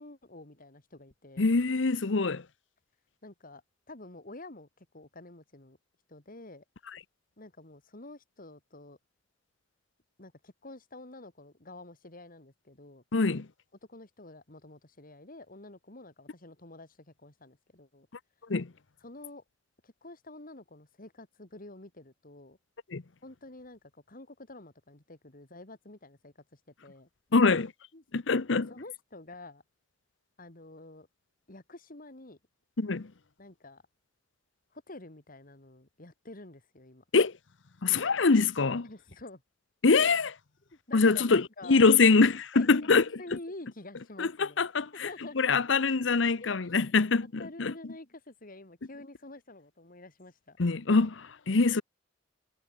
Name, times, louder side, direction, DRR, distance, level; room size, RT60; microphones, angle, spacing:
voice 1, 0.0-1.5 3.2-3.6 3.9-5.8 6.1-6.6 7.4-9.0 10.2-13.0 13.9-18.1 19.0-19.4 19.8-22.6 23.2-27.1 27.4-27.6 27.9-28.0 28.7-29.6 30.4-31.1 31.5-32.4 33.4-33.8 34.7-37.0 38.8-39.4 40.7-41.9 42.5-44.7 44.9-45.4 46.4-46.9 47.4-50.6, left 2 dB, 45° left, 2.7 m, -48 dB
voice 2, 1.4-2.4 13.1-13.5 18.5-18.7 22.9-23.0 27.3-27.7 28.1-28.7 32.8-33.1 37.1-37.3 37.8-38.9 39.8-40.3 40.9-43.0 44.2-45.1 45.4-47.7 50.6-51.8, left 4 dB, 65° left, 0.8 m, -24 dB
head